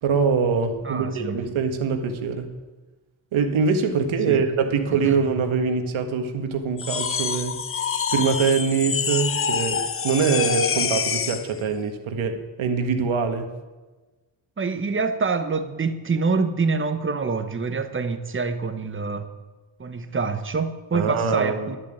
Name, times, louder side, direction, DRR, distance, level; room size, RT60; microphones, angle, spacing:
voice 1, 0.0-2.5 3.3-7.6 8.1-13.5 20.9-21.8, right 5 dB, 75° right, 6 dB, 1.6 m, -23 dB
voice 2, 0.8-1.4 4.3-4.5 5.0-5.2 14.6-19.3 19.8-21.8, right 4 dB, 25° right, 9 dB, 1.0 m, -26 dB
sound 1, 6.8-11.5, left 6 dB, 30° left, 0.5 m, -26 dB
11.5 x 7.4 x 9.2 m, 1.2 s
cardioid pair, 120°, 48 cm